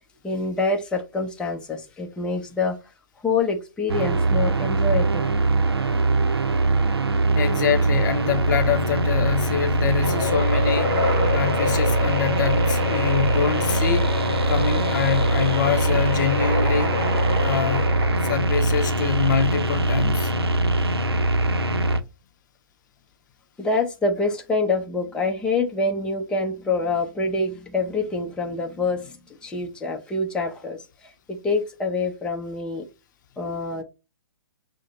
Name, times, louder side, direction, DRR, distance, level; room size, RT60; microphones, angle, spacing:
voice 1, 0.2-2.8 3.2-5.3 23.6-29.2 29.4-32.9 33.4-33.8, left 3 dB, 5° left, 0.6 m, -26 dB
sound 1, 3.9-22.0, right 2 dB, 90° right, 0.6 m, -22 dB
voice 2, 7.3-11.0 11.3-14.1 14.5-17.0 17.4-17.8 18.2-20.3, left 8 dB, 50° left, 0.6 m, -25 dB
sound 2, 10.0-18.8, left 1 dB, 35° right, 2.1 m, -28 dB
6.1 x 2.1 x 2.9 m
figure-of-eight pair, 125°, 13 cm